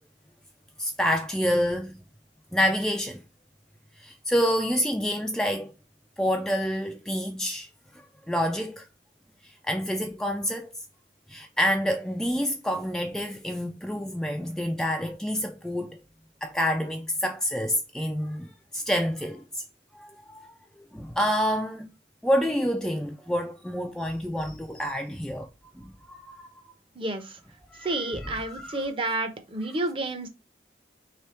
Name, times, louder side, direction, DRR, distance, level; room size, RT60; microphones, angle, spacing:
voice 1, 0.8-2.0 2.5-3.2 4.0-5.7 6.2-8.9 9.4-10.7 11.3-16.0 16.4-19.6 19.9-21.9 22.2-25.5 25.7-26.5 27.7-28.9, equal, 5° left, 0.3 m, -28 dB
voice 2, 27.0-27.4 27.8-30.3, right 2 dB, 30° right, 0.7 m, -30 dB
3.3 x 3.3 x 4.3 m
head